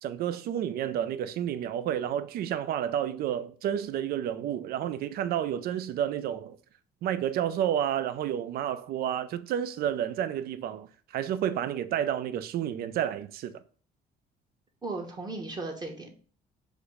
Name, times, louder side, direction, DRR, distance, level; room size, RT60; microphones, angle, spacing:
voice 1, 0.0-6.6 7.0-13.6, right 10 dB, 65° right, 0.5 m, -30 dB
voice 2, 14.8-16.1, right 3 dB, 25° right, 1.0 m, -36 dB
5.0 x 2.1 x 4.8 m
cardioid pair, 110°, 17 cm